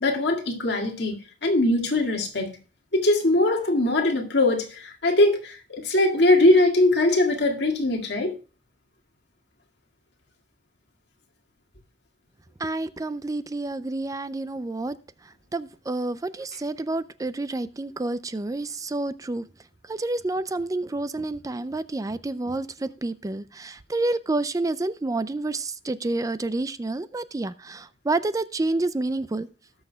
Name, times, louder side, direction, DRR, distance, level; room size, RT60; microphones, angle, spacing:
voice 1, 0.0-2.6 2.9-8.4, left 2 dB, 65° left, 2.0 m, -21 dB
voice 2, 12.6-15.0 15.2-19.5 19.8-29.5, right 2 dB, 20° right, 0.4 m, -29 dB
18.5 x 6.3 x 2.2 m
head